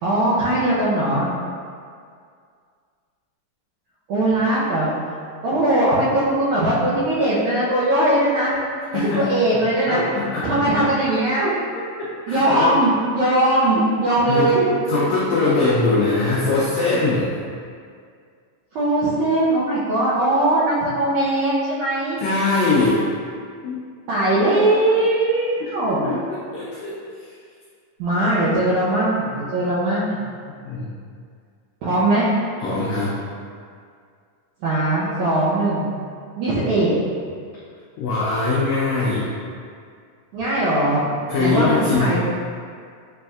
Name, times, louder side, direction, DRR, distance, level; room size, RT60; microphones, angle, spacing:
voice 1, 0.0-1.3 4.1-4.9 5.4-8.5 8.9-10.0 10.4-11.5 12.3-14.7 18.7-22.2 24.1-26.0 28.0-30.2 31.8-32.3 34.6-35.9 36.4-36.9 40.3-41.0 41.4-42.2, right 1 dB, 75° right, -10 dB, 2.0 m, -20 dB
voice 2, 8.9-10.5 12.3-12.8 14.3-14.5 14.9-17.3 22.2-23.1 23.6-23.8 25.6-25.7 26.0-26.9 30.6-30.9 32.6-33.1 38.0-39.3 41.3-42.2, left 3 dB, 85° left, -6 dB, 1.6 m, -22 dB
6.8 x 3.4 x 2.3 m, 2.2 s
omnidirectional pair, 3.8 m